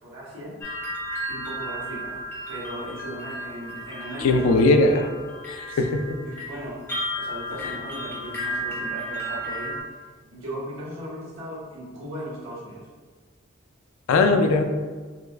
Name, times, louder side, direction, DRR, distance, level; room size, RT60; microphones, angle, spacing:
voice 1, 0.0-0.6 1.3-4.7 5.7-5.8 6.2-6.8 7.2-9.8 10.3-12.9, equal, 75° right, -7 dB, 1.1 m, -37 dB
sound 1, 0.6-9.8, equal, 10° left, 0.7 m, -34 dB
voice 2, 4.2-5.1 5.5-6.2 14.1-14.6, left 2 dB, 85° left, 6 dB, 0.3 m, -19 dB
4.3 x 2.1 x 2.4 m, 1.5 s
head